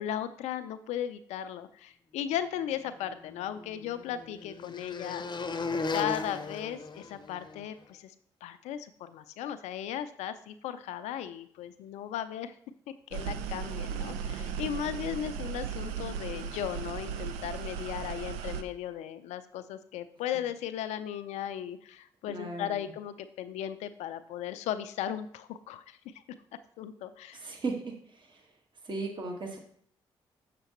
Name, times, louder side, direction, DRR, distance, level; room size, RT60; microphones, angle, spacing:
voice 1, 0.0-5.2 5.9-8.1 8.4-12.6 13.1-26.0 26.8-27.5, left 10 dB, 80° left, 12 dB, 0.4 m, -36 dB
sound 1, 3.0-7.6, left 3 dB, 40° left, 0.7 m, -37 dB
sound 2, 13.1-18.6, right 7 dB, 90° right, 0.4 m, -36 dB
voice 2, 22.3-22.9 27.3-28.4 28.8-29.6, right 3 dB, 45° right, 1 dB, 1.6 m, -37 dB
6.8 x 6.6 x 3.0 m, 0.62 s
hypercardioid pair, 45°, 11 cm